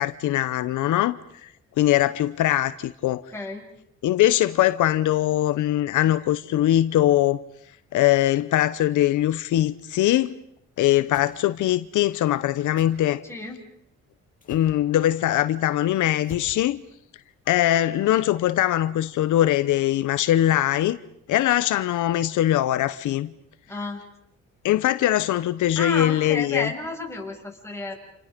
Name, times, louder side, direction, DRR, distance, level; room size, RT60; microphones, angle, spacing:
voice 1, 0.0-1.5 1.8-3.2 4.0-7.4 7.9-10.3 10.8-13.2 14.5-16.8 17.5-21.0 21.3-23.3 24.6-26.7, left 13 dB, 80° left, 0.9 m, -21 dB
voice 2, 3.3-3.7 13.2-13.6 23.7-24.0 25.8-27.9, left 2 dB, 10° left, 7.0 m, -31 dB
sound 1, 11.1-11.3 12.8-12.9 14.4-14.8 16.2-16.6, left 3 dB, 25° left, 6.9 m, -43 dB
29.5 x 28.5 x 5.2 m
cardioid pair, 90°, 30 cm